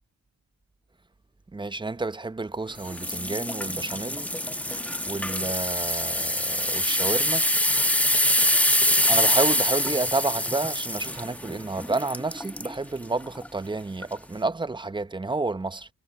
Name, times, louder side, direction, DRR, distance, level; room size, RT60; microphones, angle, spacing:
voice 1, 1.5-4.3 5.1-7.5 9.0-15.9, right 3 dB, 15° right, 0.7 m, -30 dB
sound 1, 2.8-12.7 13.3-13.5 14.0-14.1, left 1 dB, 5° left, 1.3 m, -25 dB
cardioid pair, 105°, 34 cm